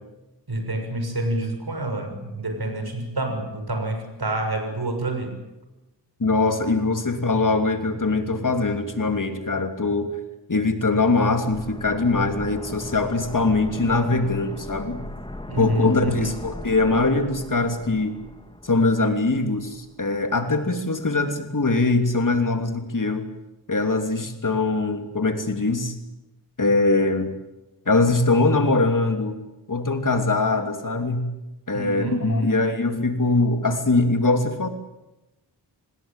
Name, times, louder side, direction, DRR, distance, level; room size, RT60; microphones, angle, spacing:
voice 1, 0.5-5.3 15.5-16.3 31.7-32.7, right 1 dB, 60° right, 6 dB, 6.5 m, -27 dB
voice 2, 6.2-10.1 10.5-15.0 15.6-18.2 18.6-23.3 23.7-25.9 26.6-27.3 27.9-29.4 29.7-31.3 31.7-34.7, left 3 dB, 45° left, 6 dB, 3.0 m, -22 dB
sound 1, 11.5-20.2 20.5-20.6, left 1 dB, 10° left, 2.4 m, -39 dB
26.0 x 19.5 x 9.1 m, 1.0 s
wide cardioid pair, 60°, 43 cm